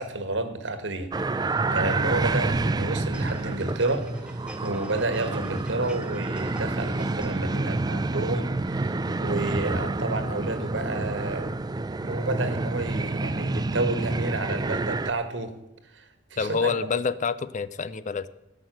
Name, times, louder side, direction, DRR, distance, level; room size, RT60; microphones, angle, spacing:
voice 1, 0.0-1.3 1.7-4.1 4.6-8.9 9.2-11.6 12.0-15.5 15.9-16.7, right 2 dB, 75° right, 9 dB, 1.5 m, -30 dB
sound 1, 1.1-15.1, right 3 dB, 20° right, 0.4 m, -28 dB
sound 2, 3.1-7.5 7.9-8.0, right 1 dB, 5° right, 1.0 m, -48 dB
voice 2, 16.4-18.3, left 5 dB, 40° left, 16 dB, 0.5 m, -27 dB
16.5 x 6.1 x 7.8 m, 0.91 s
head